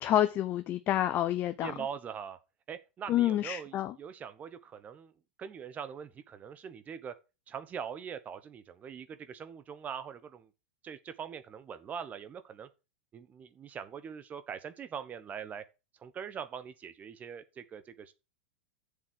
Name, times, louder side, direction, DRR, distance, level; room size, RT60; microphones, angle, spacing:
voice 1, 0.0-1.7 3.1-3.9, left 12 dB, 35° left, 0.8 m, -28 dB
voice 2, 1.6-2.4 2.7-5.1 5.4-7.1 7.5-10.5 10.8-12.7 13.1-15.6 16.0-18.1, right 7 dB, 25° right, 1.1 m, -42 dB
7.2 x 6.8 x 6.3 m
figure-of-eight pair, 95°, 6 cm